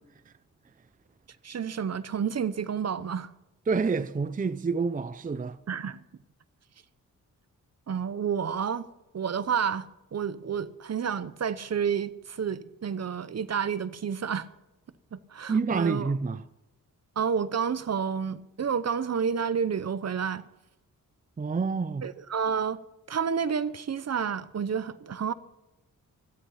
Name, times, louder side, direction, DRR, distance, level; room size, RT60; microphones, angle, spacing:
voice 1, 1.4-3.3 5.7-6.0 7.9-8.9 9.1-14.5 15.1-16.1 17.2-20.4 22.0-22.8 23.1-25.3, right 7 dB, 50° right, 0.9 m, -30 dB
voice 2, 3.7-5.6 15.5-16.4 21.4-22.0, right 4 dB, 25° right, 0.5 m, -28 dB
17.0 x 13.0 x 5.7 m
wide cardioid pair, 125°, 33 cm